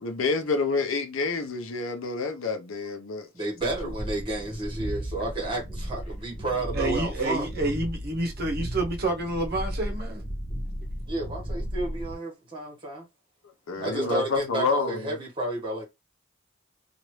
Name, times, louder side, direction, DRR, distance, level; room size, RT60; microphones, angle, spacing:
voice 1, 0.0-3.3 13.7-15.2, left 4 dB, 80° left, 0.7 m, -28 dB
voice 2, 3.3-7.5 11.1-13.1 13.8-15.8, right 2 dB, 25° right, 1.5 m, -31 dB
sound 1, 3.6-12.1, equal, 30° left, 1.4 m, -35 dB
voice 3, 6.7-10.3 13.8-14.1, right 2 dB, 50° right, 0.9 m, -29 dB
3.0 x 2.5 x 3.1 m
head